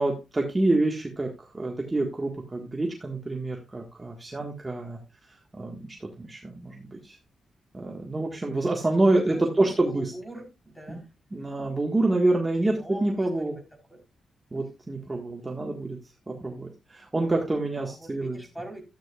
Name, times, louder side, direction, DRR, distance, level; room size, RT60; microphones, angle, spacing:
voice 1, 0.0-5.0 5.3-7.2 7.7-10.1 10.9-11.0 11.3-12.8 13.0-13.6 14.5-16.0 16.3-18.4, right 2 dB, 20° right, 0 dB, 1.6 m, -27 dB
voice 2, 9.3-11.1 12.6-13.6 13.9-14.0 14.6-14.7 17.8-18.8, right 1 dB, 5° left, 2 dB, 4.0 m, -43 dB
13.0 x 9.1 x 2.4 m, 0.25 s
wide cardioid pair, 150°, 0 cm